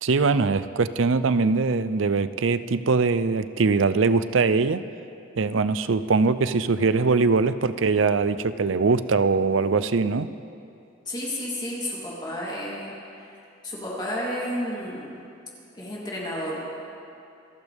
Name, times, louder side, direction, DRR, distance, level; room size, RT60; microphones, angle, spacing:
voice 1, 0.0-4.8 5.4-10.3, right 4 dB, 85° right, 13 dB, 0.6 m, -22 dB
voice 2, 11.0-13.3 13.6-15.2 15.7-16.6, equal, 25° left, -6 dB, 3.4 m, -32 dB
27.0 x 14.5 x 3.5 m, 2.6 s
head